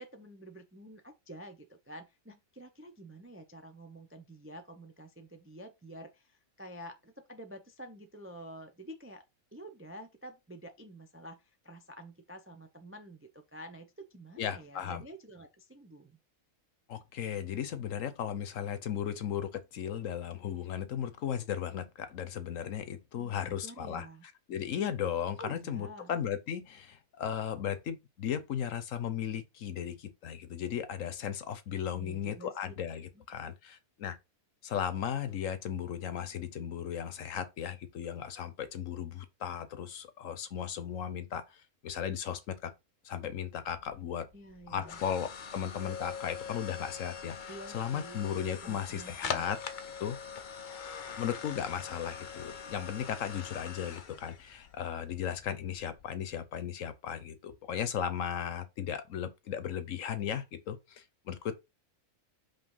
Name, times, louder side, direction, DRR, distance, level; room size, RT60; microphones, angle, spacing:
voice 1, 0.0-9.2 9.5-16.1 23.1-24.2 25.4-26.1 32.0-32.7 33.1-33.2 44.3-45.0 47.5-49.4, right 1 dB, 15° right, 0.4 m, -49 dB
voice 2, 14.4-15.0 16.9-24.1 24.5-34.2 34.6-42.7 43.0-44.3 44.7-49.6 50.0-50.2 51.2-61.5, left 9 dB, 65° left, 1.1 m, -36 dB
sound 1, 43.5-56.4, left 6 dB, 50° left, 0.6 m, -43 dB
5.3 x 3.2 x 5.5 m
omnidirectional pair, 1.5 m